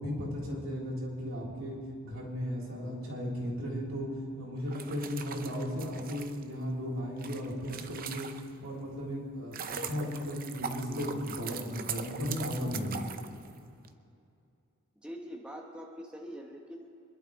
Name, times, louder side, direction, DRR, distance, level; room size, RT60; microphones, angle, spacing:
voice 1, 0.0-1.8 2.0-4.1 4.4-8.3 8.6-13.1, equal, 70° right, -3 dB, 3.9 m, -35 dB
sound 1, 4.6-8.7 9.2-13.9, right 6 dB, 40° right, 0.7 m, -41 dB
voice 2, 15.0-16.9, equal, 5° right, -1 dB, 1.0 m, -43 dB
26.0 x 11.5 x 3.6 m, 2.5 s
head